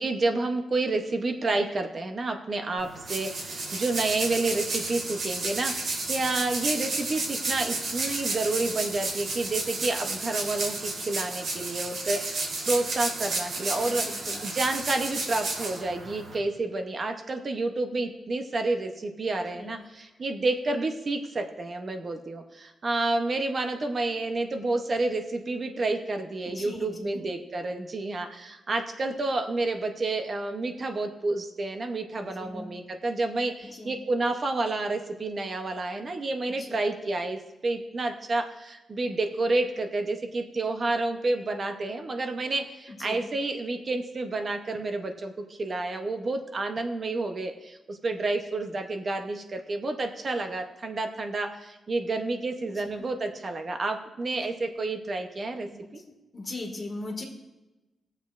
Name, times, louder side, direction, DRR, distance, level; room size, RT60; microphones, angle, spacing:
voice 1, 0.0-14.1 14.4-56.0, right 2 dB, 40° right, 5 dB, 0.7 m, -30 dB
sound 1, 2.8-16.4, right 2 dB, 70° right, 2.7 m, -32 dB
voice 2, 13.6-14.4 19.5-19.7 26.6-27.2 32.2-32.7 33.6-33.9 36.4-36.8 42.9-43.2 52.8-53.0 55.6-57.2, left 2 dB, 30° left, 1 dB, 1.7 m, -40 dB
20.0 x 7.4 x 2.5 m, 1.0 s
wide cardioid pair, 140°, 0 cm